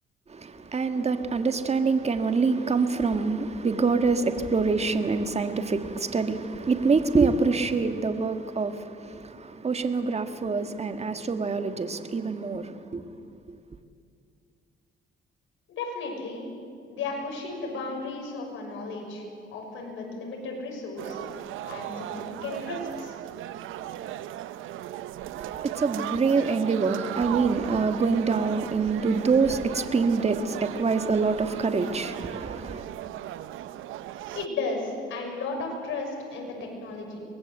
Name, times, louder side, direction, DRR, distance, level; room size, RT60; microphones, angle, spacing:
voice 1, 0.3-13.6 25.4-32.8, right 4 dB, 30° right, 1.7 m, -26 dB
voice 2, 15.8-16.4 16.9-19.2 19.5-21.2 21.6-23.2 34.3-37.2, left 3 dB, 80° left, 6.2 m, -34 dB
sound 1, 21.0-34.5, right 12 dB, 85° right, 0.7 m, -37 dB
24.0 x 20.0 x 8.1 m
cardioid pair, 90°, 20 cm